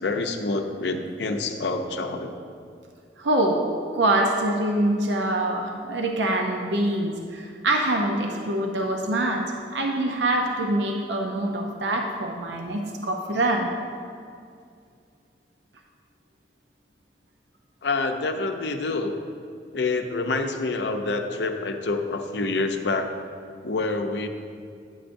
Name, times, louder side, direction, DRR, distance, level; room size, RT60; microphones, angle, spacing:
voice 1, 0.0-2.3 17.8-19.2 19.7-23.1 23.6-24.3, left 3 dB, 70° left, 5 dB, 0.6 m, -27 dB
voice 2, 3.2-3.6 3.9-9.4 9.7-13.7, right 1 dB, 85° right, 2 dB, 0.6 m, -24 dB
9.9 x 7.7 x 2.6 m, 2.4 s
head